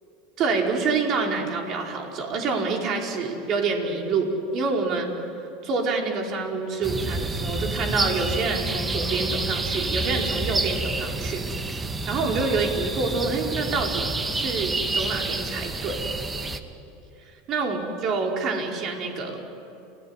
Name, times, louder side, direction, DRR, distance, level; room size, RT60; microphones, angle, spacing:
voice 1, 0.4-5.1 5.6-11.7 12.1-16.0 17.2-19.4, right 4 dB, 45° right, 1 dB, 5.0 m, -27 dB
sound 1, 6.8-16.6, right 3 dB, 20° right, 1.9 m, -28 dB
29.5 x 17.5 x 9.9 m, 2.8 s
hypercardioid pair, 90°, 0 cm